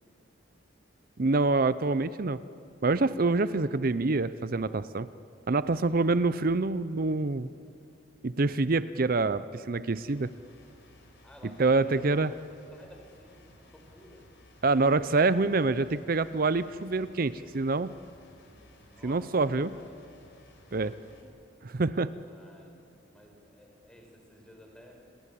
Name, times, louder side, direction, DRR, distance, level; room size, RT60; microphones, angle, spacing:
voice 1, 1.2-2.4 2.8-5.1 5.5-7.5 8.2-10.3 11.6-12.3 14.6-17.9 19.0-19.7 20.7-20.9 21.6-22.1, right 3 dB, 50° right, 15 dB, 0.6 m, -26 dB
sound 1, 9.9-21.2, left 1 dB, 70° left, 4.5 m, -58 dB
voice 2, 11.2-14.2 18.4-20.0 20.8-21.3 22.2-24.9, left 1 dB, 5° left, 1 dB, 4.5 m, -55 dB
29.0 x 22.5 x 8.5 m, 2.5 s
head